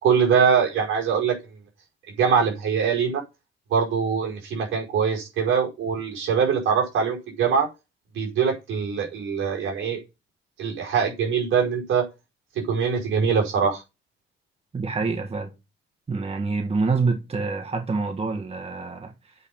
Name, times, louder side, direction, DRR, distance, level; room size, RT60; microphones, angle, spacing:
voice 1, 0.0-1.4 2.2-3.2 3.7-7.7 8.1-10.0 10.6-12.1 12.6-13.8, right 6 dB, 75° right, 5.1 m, -23 dB
voice 2, 14.7-15.5 16.1-19.3, right 4 dB, 30° right, 1.7 m, -26 dB
8.3 x 5.5 x 7.1 m
cardioid pair, 90°, 20 cm